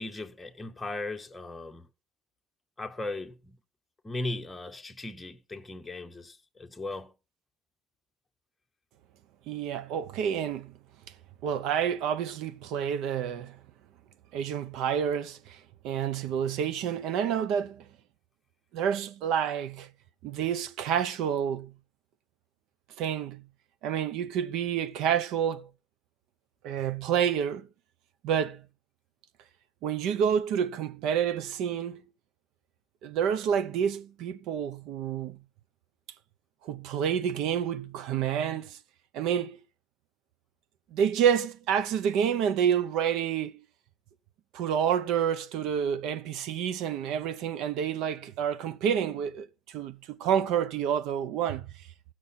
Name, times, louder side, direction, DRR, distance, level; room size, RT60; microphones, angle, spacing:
voice 1, 0.0-1.9 2.8-3.6 4.0-7.1, left 2 dB, 10° left, 0.9 m, -37 dB
voice 2, 9.5-10.7 11.4-13.6 14.3-17.9 18.7-19.9 20.2-21.7 23.0-23.4 23.8-25.7 26.6-27.7 28.2-28.6 29.8-32.0 33.0-35.4 36.6-38.8 39.1-39.6 40.9-43.6 44.5-51.7, right 8 dB, 65° right, 0.8 m, -29 dB
16.0 x 6.1 x 4.1 m
cardioid pair, 160°, 0 cm